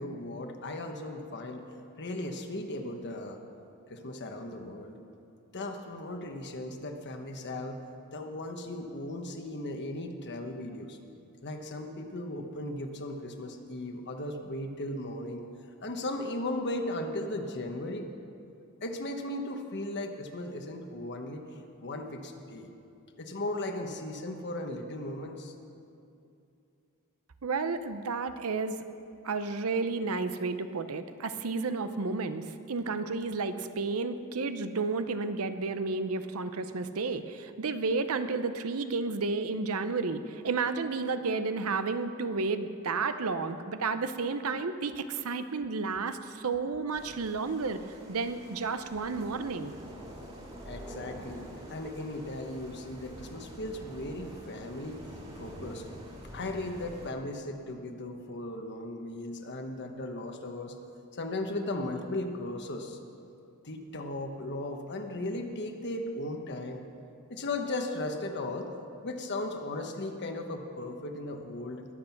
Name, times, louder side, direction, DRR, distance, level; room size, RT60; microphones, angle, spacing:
voice 1, 0.0-1.6 2.0-3.4 3.9-5.0 5.5-7.8 8.1-11.0 11.4-15.5 15.8-18.1 18.8-21.4 21.8-22.7 23.2-25.6 50.7-55.0 55.4-55.8 56.3-60.8 61.1-63.0 63.6-66.8 67.3-68.7 69.0-71.8, left 1 dB, 50° left, 5 dB, 1.2 m, -37 dB
voice 2, 27.4-28.8 29.2-47.8 48.1-49.7, right 4 dB, 70° right, 10 dB, 0.7 m, -32 dB
sound 1, 46.9-57.1, equal, 25° right, 2.6 m, -46 dB
21.0 x 7.7 x 5.9 m, 2.6 s
head